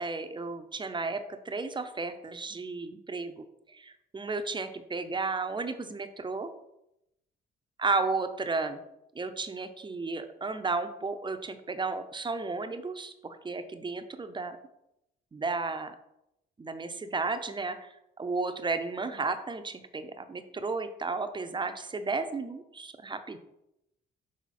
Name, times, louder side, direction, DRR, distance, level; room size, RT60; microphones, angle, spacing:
voice 1, 0.0-6.5 7.8-8.8 9.1-14.6 15.3-15.9 16.6-17.9 18.2-23.4, right 3 dB, 25° right, 8 dB, 0.6 m, -33 dB
6.2 x 3.8 x 4.1 m, 0.84 s
cardioid pair, 90°, 20 cm